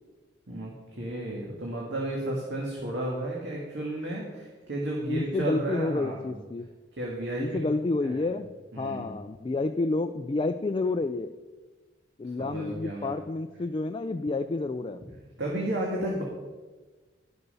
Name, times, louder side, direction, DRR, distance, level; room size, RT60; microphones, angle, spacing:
voice 1, 1.0-6.4 7.0-7.7 8.0-8.3 8.7-9.1 12.4-13.1 15.4-16.2, right 1 dB, 70° right, -3 dB, 1.9 m, -33 dB
voice 2, 5.1-6.7 7.4-8.5 8.8-11.3 12.2-15.0, left 2 dB, 30° left, 8 dB, 0.3 m, -29 dB
12.0 x 6.8 x 5.5 m, 1.3 s
head